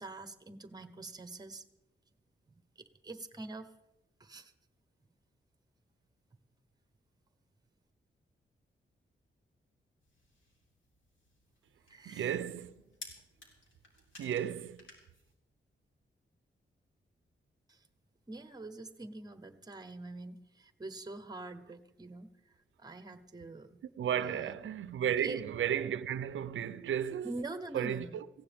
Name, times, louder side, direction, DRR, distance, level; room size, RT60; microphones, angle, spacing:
voice 1, 0.0-1.7 2.8-3.8 4.2-4.5 11.9-12.4 17.7-17.9 18.3-23.8 24.2-24.5 25.2-25.4 27.2-28.2, right 2 dB, 20° right, 0.9 m, -45 dB
sound 1, 10.0-15.3, left 2 dB, 80° left, 3.5 m, -56 dB
voice 2, 12.1-12.7 14.2-14.8 24.0-27.3 27.7-28.0, right 9 dB, 85° right, 0.5 m, -33 dB
18.5 x 16.0 x 3.5 m
wide cardioid pair, 140°, 20 cm